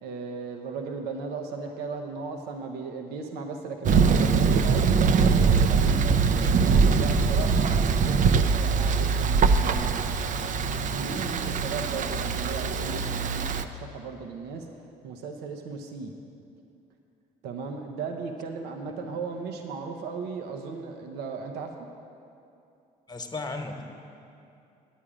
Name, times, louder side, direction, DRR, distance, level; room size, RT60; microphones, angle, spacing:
voice 1, 0.0-6.2 6.9-10.3 10.9-14.7 15.0-16.1 17.4-21.9, right 4 dB, 80° right, 4 dB, 0.8 m, -36 dB
Thunder, 3.8-13.6, right 5 dB, 50° right, 0.5 m, -22 dB
voice 2, 23.1-23.8, left 3 dB, 25° left, 5 dB, 1.2 m, -36 dB
10.0 x 8.5 x 5.0 m, 2.6 s
supercardioid pair, 70°, 17 cm